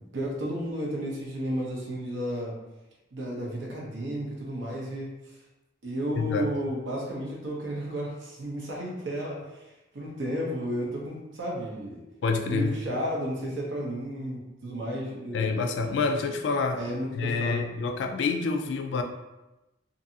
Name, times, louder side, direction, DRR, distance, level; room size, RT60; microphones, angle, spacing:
voice 1, 0.0-2.5 3.1-5.4 5.8-12.0 12.4-15.5 16.7-17.7, equal, 80° right, -3 dB, 0.7 m, -33 dB
voice 2, 6.2-6.5 12.2-12.7 15.3-16.8 17.1-19.0, left 4 dB, 70° left, 5 dB, 0.3 m, -27 dB
2.6 x 2.5 x 2.7 m, 1.0 s
head